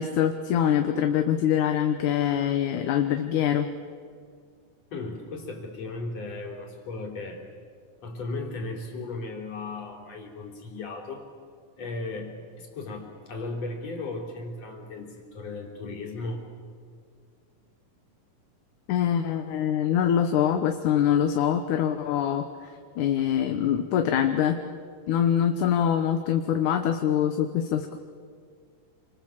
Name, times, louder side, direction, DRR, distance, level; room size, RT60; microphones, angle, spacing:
voice 1, 0.0-3.7 18.9-22.7 23.0-24.6 25.1-28.0, left 9 dB, 70° left, 6 dB, 2.4 m, -24 dB
voice 2, 4.9-7.4 8.0-11.3 11.8-16.5, left 3 dB, 50° left, 1 dB, 4.7 m, -36 dB
28.0 x 26.0 x 7.4 m, 2.2 s
omnidirectional pair, 3.8 m